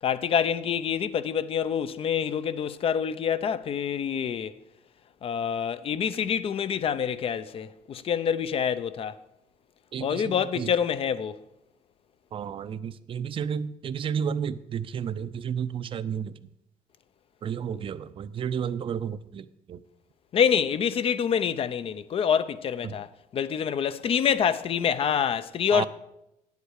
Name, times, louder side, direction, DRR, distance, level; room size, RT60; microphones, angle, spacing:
voice 1, 0.0-4.5 5.2-9.2 10.0-11.4 17.7-17.8 20.3-25.9, left 8 dB, 40° left, 0.6 m, -26 dB
voice 2, 9.9-10.7 12.3-16.3 17.4-19.8 22.8-23.0 25.7-25.9, right 7 dB, 40° right, 0.5 m, -32 dB
9.7 x 8.3 x 6.5 m
cardioid pair, 120°, 14 cm